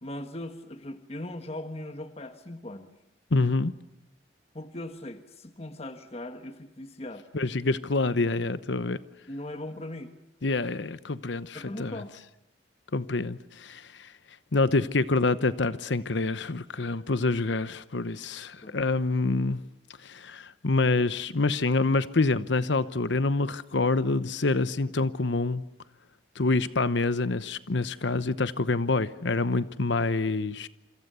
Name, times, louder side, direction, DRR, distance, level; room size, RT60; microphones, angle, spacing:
voice 1, 0.0-2.9 4.5-7.3 9.3-10.1 11.5-12.1 18.6-18.8, left 1 dB, 35° left, 1.5 m, -39 dB
voice 2, 3.3-3.7 7.3-9.0 10.4-12.0 12.9-14.1 14.5-19.6 20.0-25.6 26.4-30.7, left 3 dB, 70° left, 0.9 m, -26 dB
28.0 x 26.0 x 6.9 m
head